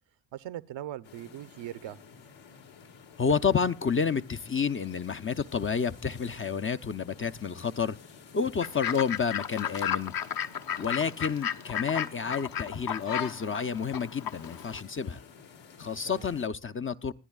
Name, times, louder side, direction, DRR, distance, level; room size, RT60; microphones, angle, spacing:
voice 1, 0.3-2.0 10.9-11.1 16.0-16.3, right 12 dB, 65° right, 0.8 m, -40 dB
sound 1, 1.0-16.5, left 6 dB, 70° left, 1.9 m, -52 dB
voice 2, 3.2-8.0 8.3-10.1 10.8-15.2 15.8-17.1, left 6 dB, 25° left, 0.6 m, -30 dB
Fowl / Bird, 8.6-14.8, left 9 dB, 50° left, 1.0 m, -34 dB
25.5 x 9.9 x 2.4 m
cardioid pair, 70°, 47 cm